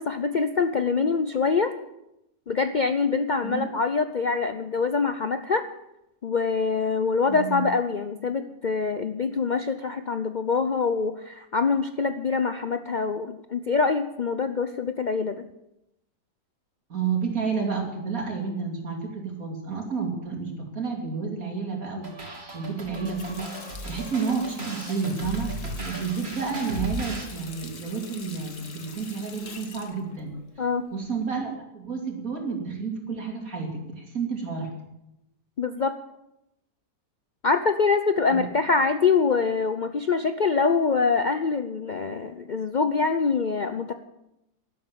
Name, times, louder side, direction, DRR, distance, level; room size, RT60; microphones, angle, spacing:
voice 1, 0.0-1.7 2.5-5.7 6.2-15.5 30.6-30.9 35.6-36.0 37.4-43.9, left 4 dB, 85° left, 9 dB, 0.4 m, -24 dB
voice 2, 7.3-7.7 16.9-22.2 22.5-23.6 23.8-25.5 25.8-30.4 30.9-34.7 38.3-38.4, right 5 dB, 55° right, 2 dB, 3.3 m, -30 dB
sound 1, 22.0-27.2, right 1 dB, 35° right, 3.2 m, -36 dB
Water tap faucet, 22.9-31.3, left 4 dB, 50° left, 1.8 m, -45 dB
12.5 x 12.0 x 7.6 m, 0.88 s
omnidirectional pair, 1.8 m